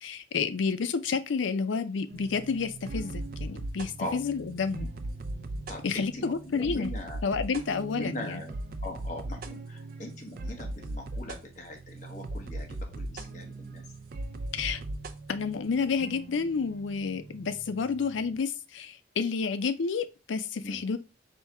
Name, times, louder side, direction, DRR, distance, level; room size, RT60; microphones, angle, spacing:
voice 1, 0.0-4.9 5.8-7.0 7.2-8.4 14.5-14.8 15.3-21.0, left 5 dB, 80° left, 0.5 m, -30 dB
sound 1, 2.1-18.4, right 2 dB, 50° right, 0.4 m, -39 dB
voice 2, 5.7-7.2 7.9-8.5 8.8-13.8 20.6-20.8, left 1 dB, 40° left, 1.0 m, -40 dB
4.4 x 2.7 x 3.3 m
head